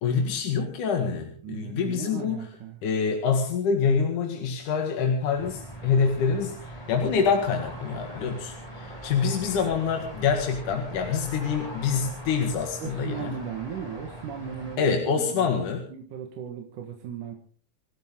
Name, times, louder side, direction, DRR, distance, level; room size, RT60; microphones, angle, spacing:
voice 1, 0.0-2.4 2.8-13.3 14.8-15.8, left 6 dB, 75° left, 3 dB, 3.4 m, -26 dB
voice 2, 1.4-2.8 12.8-15.6 15.9-17.3, right 7 dB, 80° right, 3 dB, 3.2 m, -37 dB
sound 1, 5.3-14.8, right 1 dB, 10° left, 5.1 m, -41 dB
28.5 x 12.5 x 3.7 m, 0.43 s
omnidirectional pair, 3.6 m